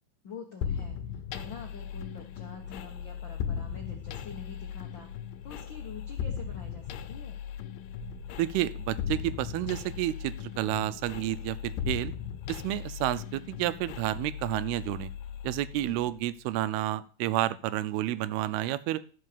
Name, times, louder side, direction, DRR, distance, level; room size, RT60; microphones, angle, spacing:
voice 1, 0.2-5.1 5.4-7.4 15.8-16.2, left 5 dB, 65° left, 0 dB, 1.1 m, -46 dB
sound 1, 0.6-16.2, left 8 dB, 85° left, 2.6 m, -38 dB
sound 2, 1.9-11.7, right 3 dB, 65° right, 2.2 m, -53 dB
voice 2, 8.4-12.1 12.5-15.1 15.4-19.0, right 14 dB, 85° right, 15 dB, 2.6 m, -30 dB
13.0 x 5.5 x 6.9 m, 0.41 s
omnidirectional pair, 4.5 m